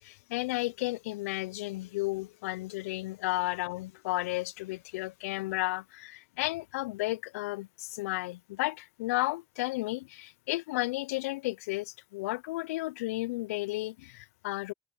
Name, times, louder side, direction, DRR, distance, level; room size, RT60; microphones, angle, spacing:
voice 1, 0.0-14.7, left 20 dB, 90° left, 0.4 m, -33 dB
hypercardioid pair, 45°, 8 cm